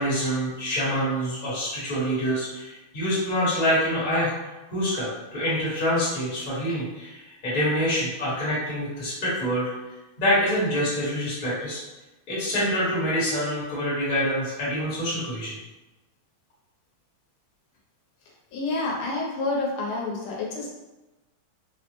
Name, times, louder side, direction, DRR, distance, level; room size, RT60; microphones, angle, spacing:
voice 1, 0.0-4.3 4.7-9.7 10.2-11.8 12.3-15.5, equal, 30° left, -8 dB, 1.0 m, -26 dB
voice 2, 18.5-20.7, left 2 dB, 80° left, -2 dB, 1.5 m, -28 dB
3.5 x 2.0 x 2.9 m, 1.1 s
omnidirectional pair, 2.3 m